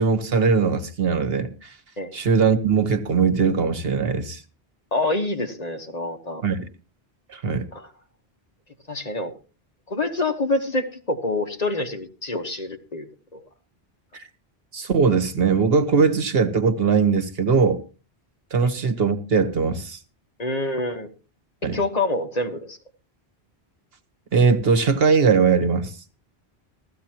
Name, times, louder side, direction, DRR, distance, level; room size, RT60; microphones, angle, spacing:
voice 1, 0.0-1.8 2.1-4.4 6.4-6.7 7.3-7.7 14.1-14.3 14.7-17.8 18.5-20.0 21.6-21.8 24.3-25.9, right 5 dB, 70° right, 1.4 m, -20 dB
voice 2, 4.9-6.4 7.7-7.9 8.9-9.3 9.9-13.1 13.3-13.4 20.4-21.1 21.7-22.8, left 2 dB, 40° left, 1.3 m, -26 dB
16.0 x 14.0 x 2.9 m
omnidirectional pair, 1.1 m